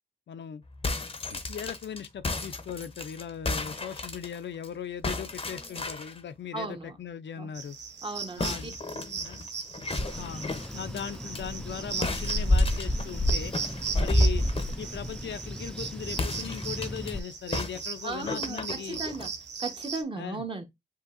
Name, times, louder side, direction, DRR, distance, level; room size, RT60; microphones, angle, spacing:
voice 1, 0.3-0.6 1.3-7.8 8.4-9.5 10.1-13.5 14.0-14.5 14.8-19.0 20.1-20.4, left 8 dB, 75° left, 0.5 m, -39 dB
sound 1, 0.7-4.7 5.0-6.2 8.4-11.4 12.0-14.8 16.1-17.1 17.5-19.3, left 3 dB, 30° left, 0.7 m, -35 dB
voice 2, 6.5-7.0 7.4-7.5 8.0-8.7 18.0-19.3 19.6-20.6, right 3 dB, 25° right, 1.1 m, -36 dB
sound 2, 7.5-20.0, right 5 dB, 70° right, 0.9 m, -38 dB
sound 3, 10.0-17.2, left 1 dB, 5° left, 0.3 m, -29 dB
7.5 x 2.8 x 2.5 m
wide cardioid pair, 110°, 19 cm